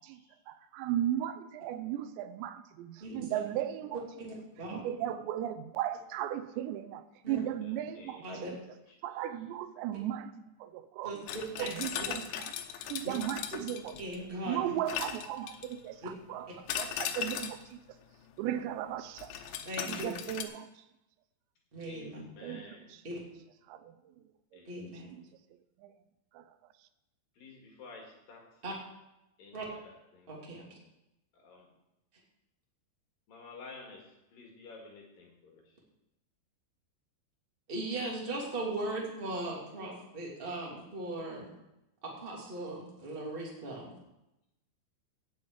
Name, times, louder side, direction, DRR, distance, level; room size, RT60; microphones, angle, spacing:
voice 1, 0.5-4.0 4.7-8.2 9.0-10.3 10.6-11.2 11.6-12.5 12.9-13.9 14.5-16.5 16.8-17.8 18.4-19.3 19.9-20.7 22.4-22.7 23.7-23.9 25.1-25.2 25.8-25.9 26.3-26.4, right 11 dB, 80° right, 11 dB, 2.8 m, -36 dB
voice 2, 3.0-3.4 4.2-4.8 7.2-7.4 8.2-8.5 11.0-11.7 13.0-13.1 14.0-14.7 16.0-16.1 19.6-20.1 21.7-22.2 23.0-23.2 24.6-25.1 28.6-28.7 29.5-29.7 30.3-30.6 37.7-41.5 42.0-44.0, right 2 dB, 15° right, -3 dB, 2.1 m, -38 dB
voice 3, 7.4-9.4 15.5-15.6 21.9-22.9 24.5-25.3 27.4-28.6 29.4-30.3 31.3-31.7 33.3-35.8, left 3 dB, 55° left, 0 dB, 3.6 m, -53 dB
sound 1, 11.3-14.3 14.9-15.9 16.7-17.7 19.2-20.4, left 9 dB, 80° left, 3.2 m, -38 dB
17.0 x 8.0 x 4.9 m, 0.92 s
omnidirectional pair, 5.3 m